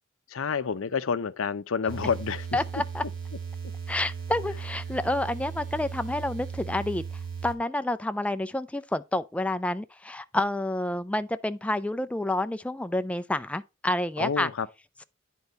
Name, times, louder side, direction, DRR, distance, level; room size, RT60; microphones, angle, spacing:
voice 1, 0.3-2.6 14.2-14.7, left 6 dB, 90° left, 0.6 m, -29 dB
sound 1, 1.9-7.5, right 6 dB, 65° right, 1.7 m, -37 dB
voice 2, 2.5-3.0 3.9-7.0 7.4-14.5, left 1 dB, 5° left, 0.3 m, -29 dB
9.8 x 4.6 x 4.0 m
head